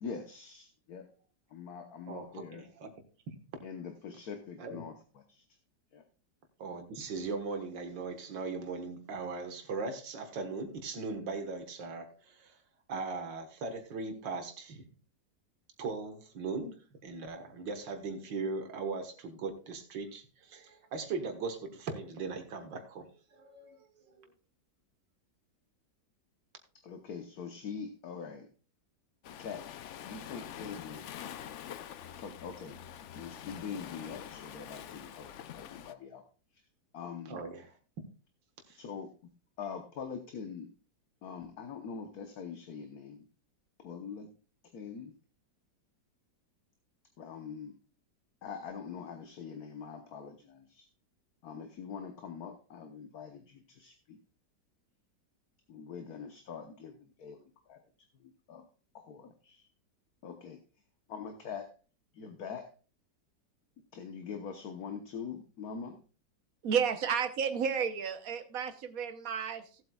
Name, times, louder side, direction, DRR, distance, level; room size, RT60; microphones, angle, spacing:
voice 1, 0.0-1.1 1.5-2.6 3.6-5.4 5.9-6.0 26.8-28.5 29.4-29.7 30.0-31.0 32.2-32.8 33.1-36.2 36.5-36.6 36.9-37.4 38.7-39.1 39.6-40.7 41.2-43.2 43.8-44.3 44.7-45.1 47.2-47.8 48.4-50.9 51.4-54.2 55.7-57.8 58.1-58.7 58.9-59.7 60.2-60.6 61.1-61.7 62.1-62.7 63.9-66.0, left 6 dB, 60° left, 6 dB, 1.4 m, -43 dB
voice 2, 2.1-2.9 4.6-4.8 6.6-12.6 12.9-14.8 15.8-16.8 17.0-24.3 37.3-37.7 38.7-38.8, right 4 dB, 90° right, 6 dB, 2.1 m, -39 dB
Waves surf, 29.2-35.9, left 9 dB, 75° left, 0.6 m, -46 dB
voice 3, 66.6-69.8, right 7 dB, 55° right, 9 dB, 1.3 m, -32 dB
17.5 x 8.1 x 2.3 m, 0.36 s
omnidirectional pair, 1.9 m